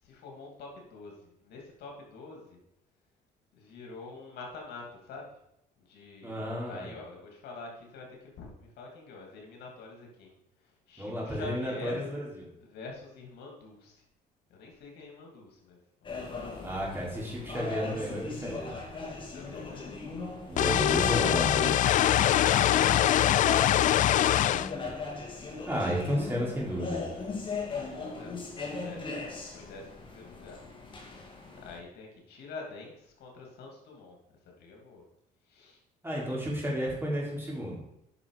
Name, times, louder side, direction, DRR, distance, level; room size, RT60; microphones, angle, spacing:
voice 1, 0.0-2.6 3.5-5.4 5.8-12.1 12.6-14.0 14.5-16.3 19.0-20.0 27.2-30.6 31.5-34.2 34.4-35.0 35.5-35.8, left 3 dB, 70° left, 0 dB, 2.8 m, -46 dB
voice 2, 6.2-6.9 11.0-12.3 16.6-18.7 20.5-21.7 25.7-27.0 36.0-37.8, equal, 15° right, -4 dB, 4.0 m, -32 dB
sound 1, 16.0-31.8, left 4 dB, 30° left, 2.0 m, -38 dB
sound 2, 20.6-24.7, left 12 dB, 50° left, 0.4 m, -23 dB
9.8 x 6.1 x 5.0 m, 0.80 s
cardioid pair, 110°, 17 cm